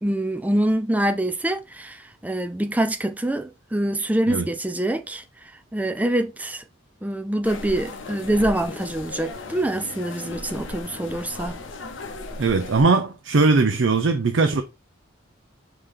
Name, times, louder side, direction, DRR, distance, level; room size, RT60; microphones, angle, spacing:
voice 1, 0.0-5.2 5.7-6.6 7.0-11.6, right 1 dB, 10° right, 0.4 m, -25 dB
sound 1, 7.4-12.8, left 2 dB, 70° left, 0.7 m, -36 dB
voice 2, 12.4-14.6, right 3 dB, 70° right, 0.5 m, -19 dB
5.0 x 2.9 x 3.7 m
head